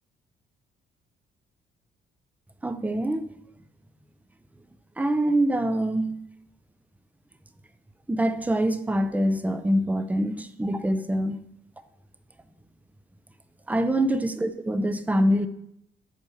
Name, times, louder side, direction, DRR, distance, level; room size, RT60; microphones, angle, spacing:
voice 1, 2.6-3.3 5.0-6.2 8.1-11.4 13.7-15.5, right 1 dB, 10° right, 0.6 m, -24 dB
8.5 x 4.4 x 7.0 m
cardioid pair, 90°, 20 cm